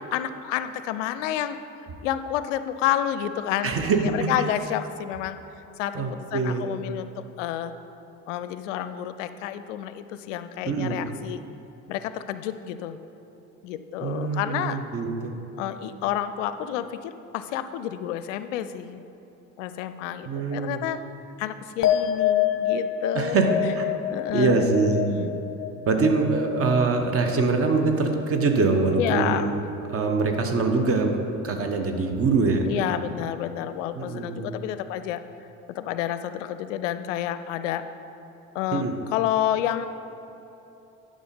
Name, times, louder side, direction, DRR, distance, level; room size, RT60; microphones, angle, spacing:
voice 1, 0.1-1.6 2.0-5.4 5.8-7.7 8.3-11.4 11.9-13.0 13.6-14.8 15.6-19.0 19.6-21.0 21.4-23.4 24.1-24.6 25.1-25.4 29.0-29.5 32.7-35.2 35.7-37.9 38.5-39.9, left 11 dB, 65° left, 12 dB, 0.5 m, -29 dB
voice 2, 3.6-4.3 5.9-6.7 10.7-11.0 14.0-15.4 20.3-20.8 23.1-23.8 24.3-25.1 25.9-29.5 29.9-31.2 31.4-32.7 34.0-34.6 38.7-38.9, right 4 dB, 35° right, 5 dB, 1.1 m, -24 dB
sound 1, 21.8-28.5 28.8-29.4, left 10 dB, 30° left, 0.8 m, -28 dB
11.0 x 5.2 x 5.3 m, 3.0 s
figure-of-eight pair, 50°, 40 cm